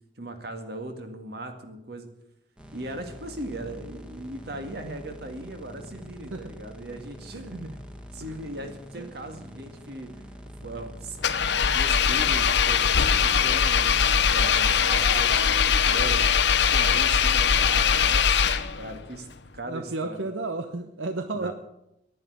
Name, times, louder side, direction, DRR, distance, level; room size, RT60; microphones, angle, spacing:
voice 1, 0.2-2.1 2.7-7.8 8.1-10.2 10.6-11.2 11.7-16.3 16.6-19.3 19.5-20.2 21.3-21.5, right 1 dB, 55° right, 6 dB, 2.1 m, -38 dB
sound 1, 2.6-14.6, equal, 5° right, 1.5 m, -45 dB
voice 2, 8.6-9.1 19.6-21.5, right 3 dB, 85° right, 8 dB, 1.0 m, -33 dB
Engine, 11.2-19.0, left 7 dB, 60° left, 0.8 m, -21 dB
11.0 x 11.0 x 9.5 m, 0.84 s
head